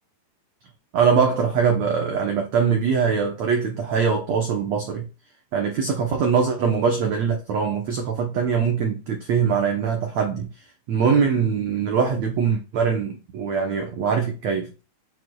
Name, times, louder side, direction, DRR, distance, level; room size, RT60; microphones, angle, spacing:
voice 1, 0.9-5.1 5.5-10.5 10.9-14.7, right 6 dB, 90° right, 1.5 m, -22 dB
7.9 x 6.8 x 2.3 m
omnidirectional pair, 4.7 m